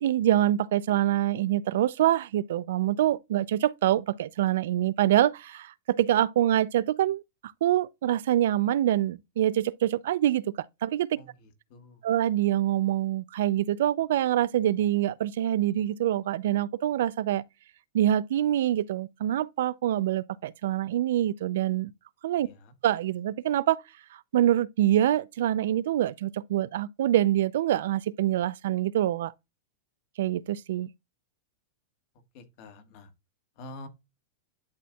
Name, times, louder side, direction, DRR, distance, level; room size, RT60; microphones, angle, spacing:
voice 1, 0.0-11.1 12.0-17.4 17.9-21.9 22.2-22.5 22.8-23.8 24.1-29.3 30.2-30.9, right 12 dB, 70° right, 0.4 m, -25 dB
voice 2, 11.1-12.0 22.4-22.7 32.3-33.1 33.6-33.9, left 2 dB, 40° left, 1.4 m, -47 dB
11.0 x 4.3 x 2.3 m
supercardioid pair, 170°, 0 cm